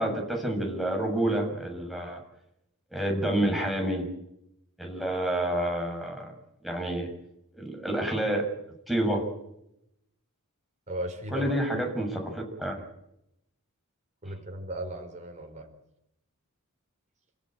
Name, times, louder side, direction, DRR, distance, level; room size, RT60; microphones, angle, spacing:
voice 1, 0.0-2.2 2.9-4.0 4.8-6.3 6.6-7.1 7.5-8.5 8.9-9.2 11.3-12.8, right 1 dB, ahead, 1 dB, 7.1 m, -28 dB
voice 2, 10.9-11.5 14.2-15.7, right 1 dB, 35° right, 3 dB, 4.9 m, -36 dB
30.0 x 16.0 x 9.2 m, 0.83 s
head